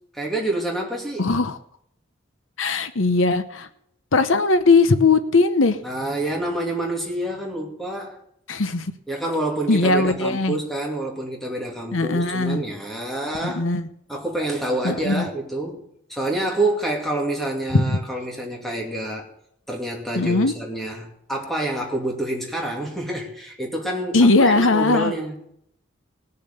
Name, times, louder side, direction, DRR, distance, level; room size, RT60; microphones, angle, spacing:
voice 1, 0.1-1.3 5.8-8.2 9.1-13.7 14.1-15.8 16.1-19.2 19.7-25.4, right 1 dB, ahead, 2.6 m, -27 dB
voice 2, 1.2-1.6 2.6-3.7 4.1-5.8 8.5-8.9 9.7-10.6 11.9-12.6 13.4-13.9 14.8-15.2 17.7-18.0 20.2-20.5 24.1-25.1, left 3 dB, 85° left, 0.9 m, -19 dB
19.5 x 6.8 x 6.8 m
head